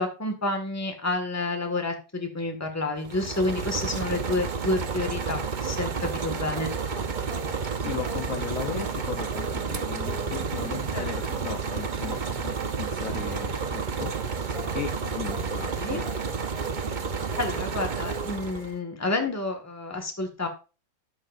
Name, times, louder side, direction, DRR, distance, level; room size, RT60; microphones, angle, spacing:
voice 1, 0.0-6.7 10.9-11.0 15.7-16.0 17.4-20.5, left 2 dB, 10° left, 4 dB, 1.4 m, -29 dB
sound 1, 3.0-18.8, right 5 dB, 80° right, 0.4 m, -31 dB
sound 2, 5.5-18.4, right 1 dB, 45° right, 2.5 m, -44 dB
voice 2, 7.7-16.0, left 8 dB, 55° left, 7 dB, 1.0 m, -37 dB
12.5 x 8.5 x 2.5 m, 0.32 s
omnidirectional pair, 2.1 m